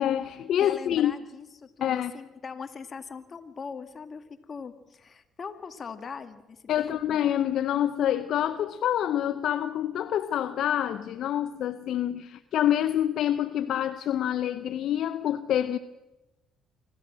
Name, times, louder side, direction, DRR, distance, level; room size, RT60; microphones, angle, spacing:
voice 1, 0.0-1.1 1.8-2.1 6.7-15.8, left 11 dB, 65° left, 0.7 m, -27 dB
voice 2, 0.6-7.2, left 5 dB, 40° left, 2.1 m, -41 dB
25.5 x 14.0 x 7.6 m
supercardioid pair, 65°, 0 cm